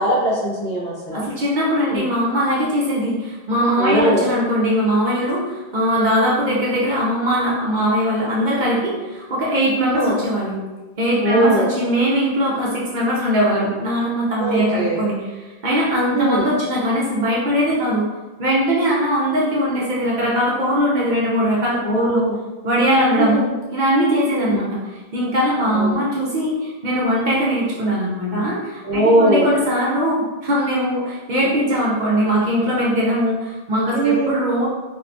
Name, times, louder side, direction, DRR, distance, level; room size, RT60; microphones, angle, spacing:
voice 1, 0.0-1.2 1.9-2.0 3.8-4.2 9.9-10.1 11.2-11.7 14.4-15.0 16.1-16.4 21.8-22.4 23.2-23.5 24.3-24.6 25.7-26.0 28.8-29.5 33.9-34.3, right 1 dB, 70° left, -6 dB, 1.1 m, -19 dB
voice 2, 1.1-10.6 11.0-15.4 15.6-18.0 18.4-22.3 22.6-23.5 23.7-24.8 25.1-34.7, equal, 55° right, -5 dB, 0.6 m, -20 dB
2.6 x 2.2 x 2.5 m, 1.2 s
omnidirectional pair, 1.1 m